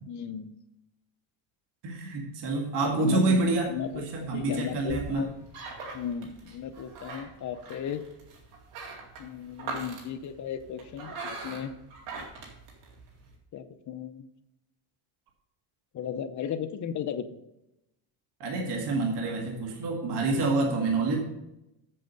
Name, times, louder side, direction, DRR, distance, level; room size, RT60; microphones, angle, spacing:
voice 1, 0.1-0.6 2.8-3.4 3.7-4.0 4.3-5.4 5.9-8.0 9.2-11.2 11.4-11.7 13.5-14.3 15.9-17.3, left 8 dB, 35° left, 9 dB, 0.8 m, -35 dB
voice 2, 1.8-5.2 18.4-21.2, right 3 dB, 55° right, 1 dB, 2.1 m, -27 dB
sound 1, 3.1-13.3, right 3 dB, 85° right, 2.5 m, -42 dB
7.7 x 7.4 x 5.4 m, 0.90 s
cardioid pair, 130°, 48 cm